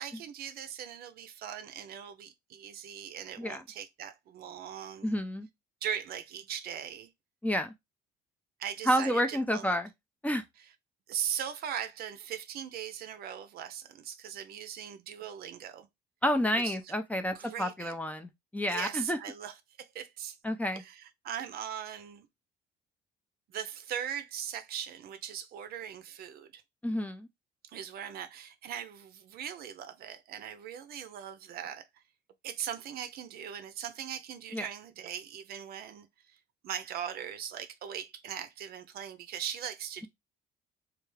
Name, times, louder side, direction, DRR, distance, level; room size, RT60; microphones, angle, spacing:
voice 1, 0.0-5.1 5.8-7.1 8.6-9.6 10.6-10.7 11.1-15.9 16.6-16.8 17.3-17.9 18.7-20.4 20.7-22.3 23.5-26.6 27.6-32.0 32.4-40.1, right 9 dB, 65° right, 0.6 m, -40 dB
voice 2, 5.0-5.5 7.4-7.7 8.9-9.9 10.2-10.4 16.2-19.2 20.4-20.8 26.8-27.3 34.5-34.7, equal, 10° left, 0.4 m, -30 dB
3.4 x 2.4 x 3.2 m
cardioid pair, 110°, 17 cm